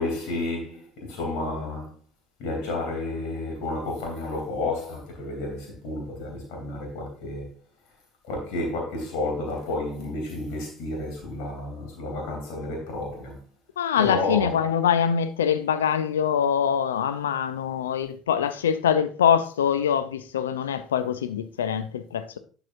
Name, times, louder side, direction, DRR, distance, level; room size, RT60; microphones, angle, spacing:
voice 1, 0.0-1.9 2.4-7.5 8.2-13.4 14.0-14.7, left 2 dB, 65° left, 2.9 m, -31 dB
voice 2, 13.8-22.4, left 8 dB, 80° left, 0.5 m, -24 dB
11.5 x 6.1 x 2.6 m
figure-of-eight pair, 55°, 0 cm